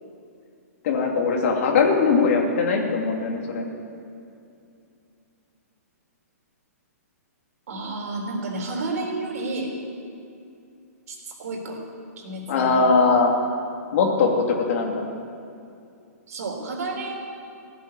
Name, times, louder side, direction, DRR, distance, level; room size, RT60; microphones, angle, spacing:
voice 1, 0.8-3.7 12.5-13.3 13.9-15.0, left 4 dB, 55° left, 1 dB, 2.7 m, -20 dB
voice 2, 7.7-9.7 11.1-11.8 12.2-13.1 16.3-17.1, right 2 dB, 65° right, 0 dB, 4.0 m, -31 dB
16.0 x 7.6 x 9.6 m, 2.5 s
hypercardioid pair, 130°, 9 cm